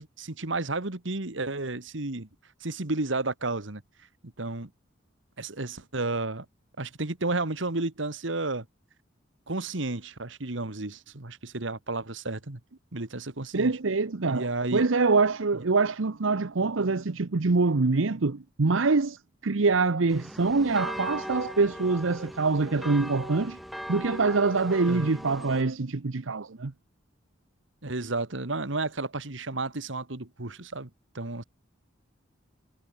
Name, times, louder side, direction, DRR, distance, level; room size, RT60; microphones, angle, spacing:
voice 1, 0.0-2.3 2.6-3.8 4.4-4.7 5.4-6.5 6.8-8.7 9.5-12.6 12.9-13.8 14.2-14.9 24.9-25.1 27.8-30.9 31.1-31.4, right 2 dB, 70° right, 1.9 m, -32 dB
voice 2, 13.5-23.6 23.9-26.7, right 3 dB, 85° right, 0.9 m, -25 dB
sound 1, 20.1-25.6, equal, ahead, 3.7 m, -39 dB
head